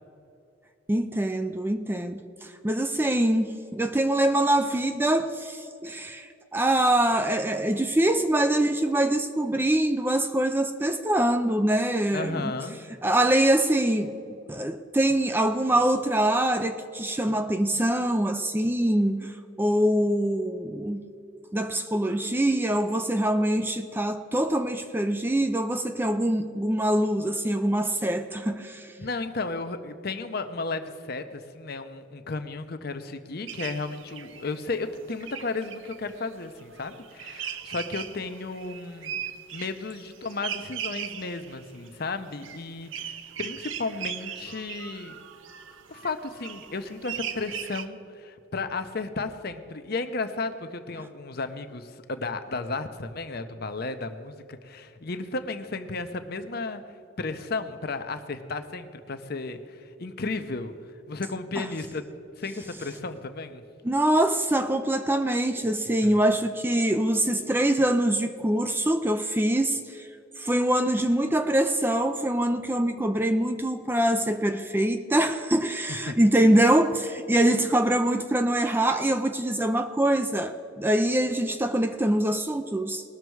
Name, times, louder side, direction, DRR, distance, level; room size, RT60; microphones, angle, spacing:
voice 1, 0.9-12.5 13.0-21.0 21.5-28.9 61.6-61.7 63.8-70.1 70.4-83.0, right 1 dB, 10° right, 8 dB, 0.4 m, -24 dB
voice 2, 12.1-12.8 29.0-39.2 39.5-45.1 45.9-56.8 57.2-60.7 61.1-62.1 62.4-63.6 66.0-66.1 76.1-76.2, left 3 dB, 50° left, 8 dB, 0.7 m, -34 dB
sound 1, 33.5-34.7 35.0-47.9, right 9 dB, 70° right, 0.6 m, -39 dB
20.0 x 6.7 x 4.7 m, 2.6 s
head